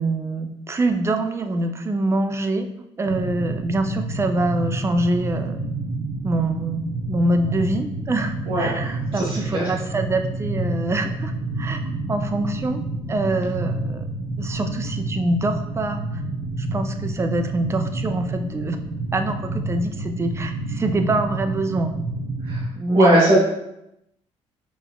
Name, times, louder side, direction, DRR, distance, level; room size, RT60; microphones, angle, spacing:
voice 1, 0.0-2.7 3.0-5.6 6.2-11.3 11.6-12.8 13.1-14.0 14.4-16.0 16.6-18.8 19.1-21.9 22.8-23.4, right 2 dB, 20° right, 6 dB, 0.4 m, -24 dB
sound 1, 3.0-22.6, right 2 dB, 85° right, 0.7 m, -29 dB
voice 2, 8.5-9.6 22.4-22.6 22.9-23.4, right 1 dB, 45° right, -7 dB, 1.3 m, -20 dB
5.3 x 3.0 x 2.3 m, 0.82 s
cardioid pair, 100°, 12 cm